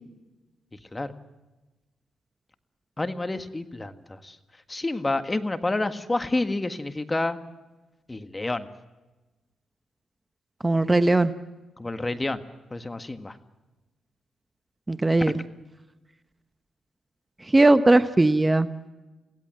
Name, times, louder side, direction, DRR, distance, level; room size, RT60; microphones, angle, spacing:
voice 1, 0.7-1.1 3.0-4.4 4.7-7.4 8.1-8.7 11.8-12.4 12.7-13.4, left 2 dB, 20° left, 9 dB, 1.7 m, -29 dB
voice 2, 10.6-11.3 14.9-15.4 17.5-18.7, right 2 dB, 20° right, 12 dB, 1.0 m, -19 dB
23.5 x 17.0 x 7.6 m, 1.1 s
supercardioid pair, 55°, 0 cm